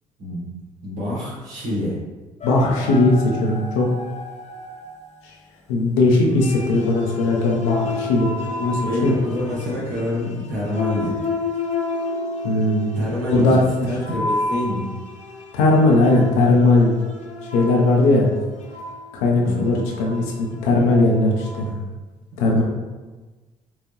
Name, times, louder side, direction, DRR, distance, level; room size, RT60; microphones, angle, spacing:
voice 1, 0.8-2.0 8.9-11.1 12.9-14.9 19.4-19.7 21.7-21.9, left 1 dB, 80° right, -6 dB, 1.5 m, -26 dB
voice 2, 2.4-3.9 5.7-8.3 8.6-9.1 12.4-12.9 13.3-13.6 15.5-16.9 17.5-18.3 19.1-21.5 22.4-22.6, left 2 dB, 80° left, -1 dB, 0.9 m, -18 dB
sound 1, 2.4-5.0 6.2-21.7, left 3 dB, 45° left, 0.9 m, -31 dB
5.8 x 2.6 x 3.0 m, 1.2 s
hypercardioid pair, 50°, 17 cm